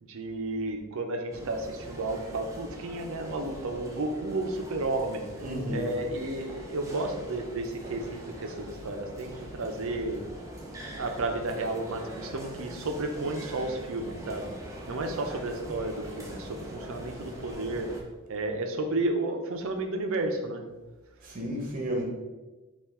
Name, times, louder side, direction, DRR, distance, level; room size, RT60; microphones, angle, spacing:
voice 1, 0.0-5.3 5.7-10.2 11.0-14.5 14.9-17.9 18.3-20.6, right 2 dB, 60° right, 5 dB, 0.6 m, -32 dB
sound 1, 1.3-18.0, right 1 dB, 15° right, 0.6 m, -42 dB
voice 2, 5.4-5.9 21.2-22.0, equal, 40° right, -1 dB, 1.0 m, -32 dB
5.5 x 2.4 x 3.6 m, 1.2 s
head